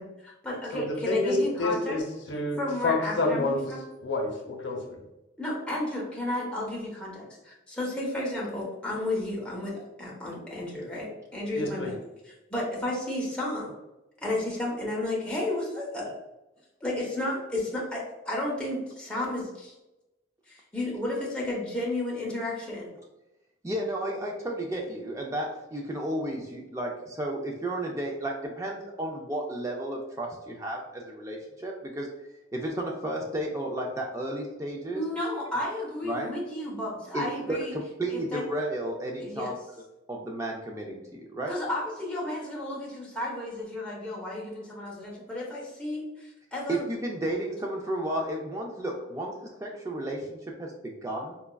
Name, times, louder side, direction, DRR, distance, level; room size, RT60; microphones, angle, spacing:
voice 1, 0.0-2.0 2.6-3.8 5.4-11.9 12.2-13.7 14.2-16.1 16.8-19.7 20.5-22.9 34.9-37.7 38.1-38.4 39.2-39.5 41.5-46.8, left 1 dB, 5° left, -5 dB, 0.7 m, -32 dB
voice 2, 0.7-2.0 2.3-3.7 4.0-5.0 11.6-11.9, left 2 dB, 75° left, 1 dB, 0.7 m, -28 dB
voice 3, 23.6-32.1 32.5-35.0 36.0-36.3 37.1-39.6 40.1-41.5 46.7-49.3 49.6-51.4, right 1 dB, 15° right, 0 dB, 0.3 m, -33 dB
4.0 x 2.3 x 2.2 m, 0.99 s
head